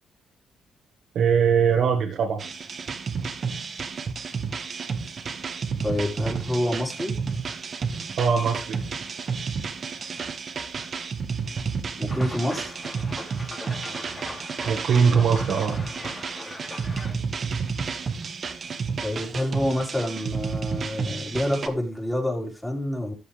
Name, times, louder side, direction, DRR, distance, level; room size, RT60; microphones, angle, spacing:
voice 1, 1.1-2.4 8.2-8.8 14.6-15.8, right 6 dB, 65° right, 1 dB, 1.8 m, -21 dB
sound 1, 2.4-21.7, right 5 dB, 45° right, 1.6 m, -31 dB
voice 2, 5.8-7.2 12.0-12.7 19.0-23.1, left 1 dB, 10° left, -1 dB, 4.4 m, -27 dB
sound 2, 12.1-17.1, left 2 dB, 25° left, 2.8 m, -40 dB
13.5 x 7.7 x 3.4 m, 0.28 s
cardioid pair, 90°, 0 cm